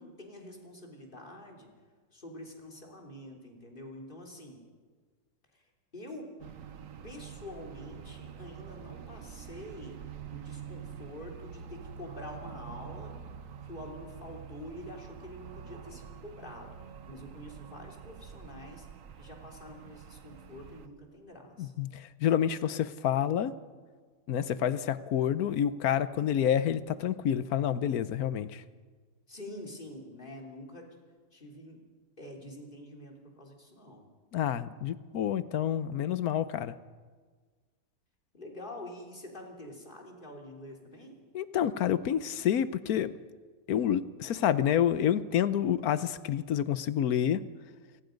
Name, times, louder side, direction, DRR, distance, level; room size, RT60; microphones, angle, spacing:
voice 1, 0.0-1.7 2.1-4.6 5.5-6.3 7.0-10.0 10.3-13.1 13.6-16.7 17.1-18.9 19.2-21.7 29.3-30.9 31.3-31.8 32.2-34.1 38.3-41.2, left 1 dB, 30° left, 0 dB, 3.5 m, -46 dB
sound 1, 6.4-20.9, right 7 dB, 60° right, 1.3 m, -46 dB
voice 2, 21.6-23.6 24.3-28.6 34.3-36.7 41.3-43.2 43.7-47.4, left 9 dB, 75° left, 15 dB, 1.2 m, -28 dB
27.5 x 18.5 x 5.2 m, 1.5 s
omnidirectional pair, 1.6 m